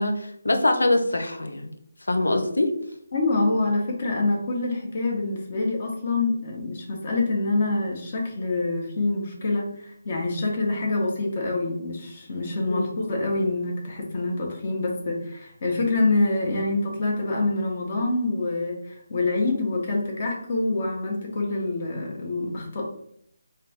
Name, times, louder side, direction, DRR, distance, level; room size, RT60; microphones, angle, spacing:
voice 1, 0.0-1.7 2.1-2.7 12.7-12.9, left 2 dB, 85° left, 5 dB, 0.8 m, -23 dB
voice 2, 3.1-22.8, left 2 dB, 40° left, -1 dB, 1.3 m, -26 dB
4.0 x 2.6 x 3.6 m, 0.71 s
figure-of-eight pair, 160°, 0 cm